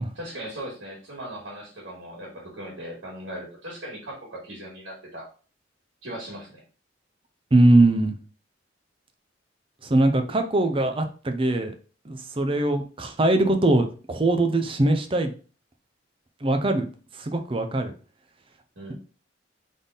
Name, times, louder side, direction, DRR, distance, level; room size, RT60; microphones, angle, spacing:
voice 1, 0.1-5.3 6.0-6.6 18.8-18.9, right 1 dB, 75° right, -4 dB, 1.9 m, -38 dB
voice 2, 7.5-8.2 9.9-11.7 12.1-15.3 16.4-16.9 17.2-17.9, right 2 dB, 30° right, 7 dB, 0.6 m, -21 dB
3.8 x 3.6 x 4.0 m, 0.38 s
head